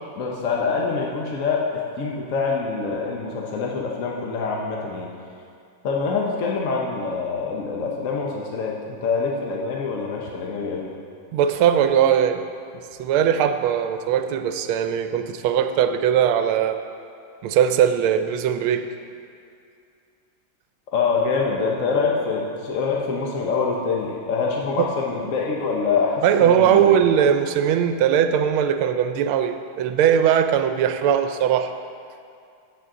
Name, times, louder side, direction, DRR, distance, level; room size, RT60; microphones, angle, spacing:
voice 1, 0.0-1.7 2.0-5.1 5.8-10.9 20.9-26.9, left 4 dB, 55° left, -1 dB, 0.9 m, -25 dB
voice 2, 11.3-12.4 12.7-16.8 17.4-18.9 24.8-24.9 26.2-31.7, right 9 dB, 90° right, 8 dB, 1.5 m, -20 dB
15.0 x 7.6 x 3.7 m, 2.4 s
omnidirectional pair, 2.3 m